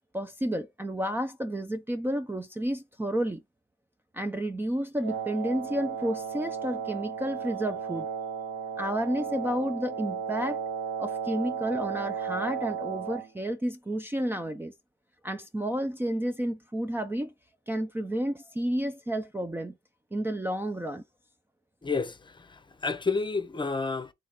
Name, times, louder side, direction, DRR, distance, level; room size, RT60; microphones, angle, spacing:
voice 1, 0.1-3.4 4.1-8.1 8.8-10.6 11.0-14.7 15.2-17.3 17.7-19.8 20.1-21.0, right 1 dB, 10° right, 0.6 m, -31 dB
Wind instrument woodwind instrument, 5.0-13.3, right 7 dB, 70° right, 1.5 m, -34 dB
voice 2, 21.8-24.1, left 4 dB, 25° left, 0.8 m, -30 dB
3.9 x 3.3 x 3.7 m
cardioid pair, 90°, 20 cm